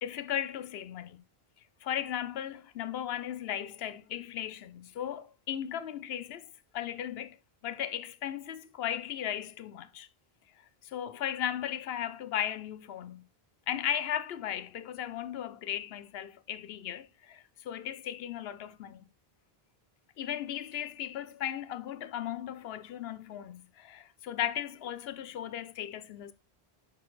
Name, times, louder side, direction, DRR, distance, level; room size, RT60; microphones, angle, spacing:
voice 1, 0.0-1.2 1.8-7.4 7.6-10.1 10.8-13.2 13.7-19.1 20.2-26.3, left 10 dB, 75° left, 0.8 m, -36 dB
6.0 x 5.2 x 3.1 m
omnidirectional pair, 1.1 m